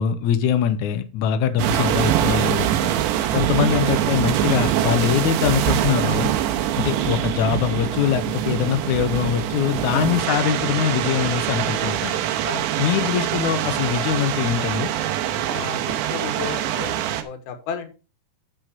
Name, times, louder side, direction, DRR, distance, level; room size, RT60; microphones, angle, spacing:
voice 1, 0.0-2.9 3.3-6.3 6.8-12.2 12.8-14.9, left 9 dB, 85° left, 9 dB, 1.7 m, -23 dB
sound 1, 1.6-17.2, right 11 dB, 85° right, 3.1 m, -23 dB
voice 2, 15.5-17.9, left 7 dB, 70° left, 9 dB, 3.0 m, -33 dB
9.6 x 6.8 x 4.7 m, 0.33 s
omnidirectional pair, 4.9 m